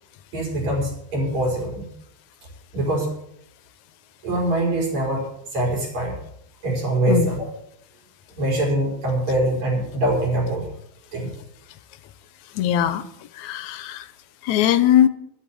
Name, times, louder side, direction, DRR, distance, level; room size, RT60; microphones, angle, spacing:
voice 1, 0.3-1.9 2.7-3.1 4.2-6.2 6.6-7.5 8.4-10.6 11.1-11.3, right 1 dB, 70° right, -1 dB, 6.2 m, -23 dB
voice 2, 12.6-13.0 13.4-14.1 14.4-15.1, left 11 dB, 85° left, 13 dB, 2.2 m, -19 dB
11.0 x 11.0 x 7.8 m, 0.72 s
omnidirectional pair, 3.3 m